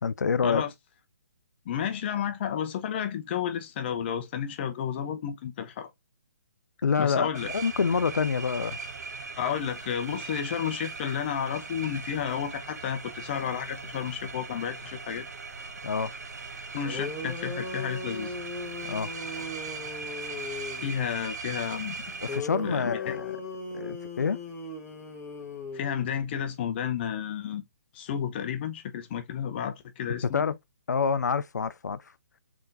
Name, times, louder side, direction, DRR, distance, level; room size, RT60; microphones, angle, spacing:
voice 1, 0.0-0.6 6.8-8.8 15.8-16.1 18.8-19.1 22.2-23.4 23.7-24.4 30.3-30.6 30.9-32.1, left 5 dB, 80° left, 0.4 m, -27 dB
voice 2, 1.7-5.9 7.0-7.5 9.4-15.3 16.7-18.4 20.5-22.2 22.6-23.2 25.7-27.6 27.9-30.4, left 8 dB, 40° left, 0.7 m, -32 dB
sound 1, 7.3-22.4, right 4 dB, 70° right, 0.9 m, -39 dB
sound 2, 16.6-16.7 16.8-21.0 22.3-26.3, left 3 dB, 15° left, 1.1 m, -38 dB
3.6 x 3.5 x 2.6 m
figure-of-eight pair, 140°, 9 cm